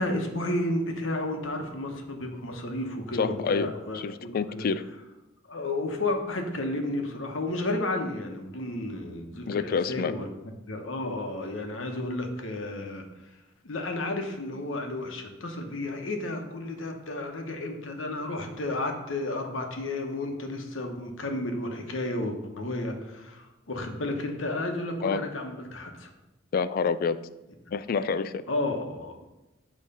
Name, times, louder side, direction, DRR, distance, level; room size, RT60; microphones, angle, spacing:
voice 1, 0.0-4.6 5.5-10.3 10.7-13.4 13.6-26.1 27.9-28.0 28.5-29.2, left 2 dB, 80° left, 3 dB, 1.0 m, -32 dB
voice 2, 3.2-4.8 9.5-10.2 25.0-25.2 26.5-27.2 27.7-28.4, left 5 dB, 50° left, 14 dB, 0.3 m, -28 dB
8.7 x 3.2 x 5.3 m, 0.99 s
head